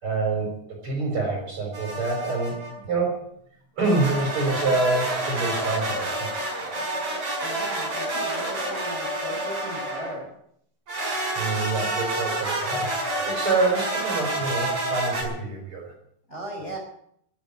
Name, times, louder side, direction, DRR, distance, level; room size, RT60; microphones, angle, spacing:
voice 1, 0.0-3.2 3.8-6.3 11.4-15.9, right 3 dB, 45° right, -1 dB, 6.0 m, -26 dB
sound 1, 1.7-2.7 3.8-10.2 10.9-15.2, right 1 dB, 60° right, 7.1 m, -29 dB
voice 2, 7.4-10.3 16.3-16.8, right 1 dB, 20° left, 1 dB, 4.5 m, -36 dB
12.5 x 12.0 x 9.9 m, 0.70 s
omnidirectional pair, 3.5 m